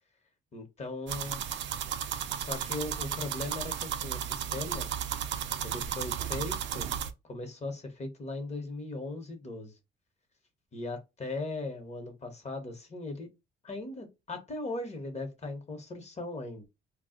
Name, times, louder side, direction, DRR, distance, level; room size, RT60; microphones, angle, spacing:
voice 1, 0.5-1.4 2.3-4.9 5.6-6.9 7.2-9.7 10.7-13.3 13.6-16.7, left 2 dB, 35° left, 1.0 m, -38 dB
sound 1, 1.1-7.1, right 9 dB, 65° right, 0.4 m, -34 dB
2.3 x 2.1 x 3.7 m
cardioid pair, 90°, 20 cm